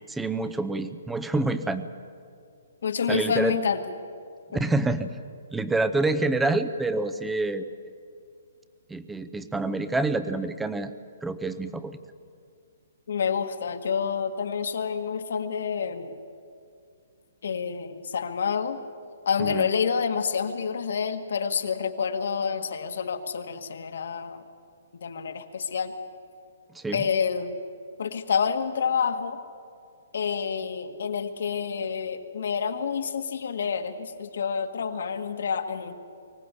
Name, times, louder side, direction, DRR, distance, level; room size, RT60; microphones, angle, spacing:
voice 1, 0.1-1.9 3.1-3.5 4.5-5.1 5.5-7.7 8.9-10.9 11.2-12.0 19.4-19.6 26.7-27.0, right 2 dB, 5° right, 11 dB, 0.6 m, -27 dB
voice 2, 2.8-3.8 4.5-4.6 13.1-16.1 17.4-18.8 19.2-24.4 24.9-25.9 26.9-27.6 28.0-29.4 30.1-36.0, left 6 dB, 65° left, 7 dB, 1.7 m, -28 dB
24.0 x 16.0 x 8.3 m, 2.3 s
hypercardioid pair, 170°, 0 cm